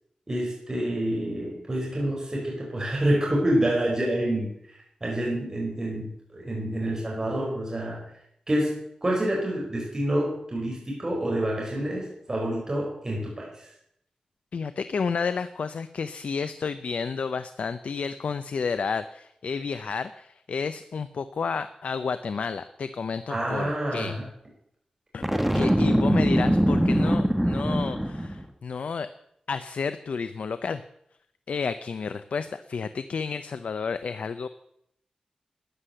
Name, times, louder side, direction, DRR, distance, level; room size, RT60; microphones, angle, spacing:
voice 1, 0.3-4.5 5.0-8.0 8.5-13.7 23.3-24.2, right 1 dB, 25° right, -3 dB, 5.2 m, -27 dB
voice 2, 14.5-24.2 25.1-29.1 29.5-30.8 31.5-34.5, left 5 dB, 85° left, 11 dB, 0.6 m, -31 dB
Boom, 25.2-28.4, equal, 5° right, 1.6 m, -22 dB
13.5 x 10.0 x 7.9 m, 0.74 s
wide cardioid pair, 110°, 2 cm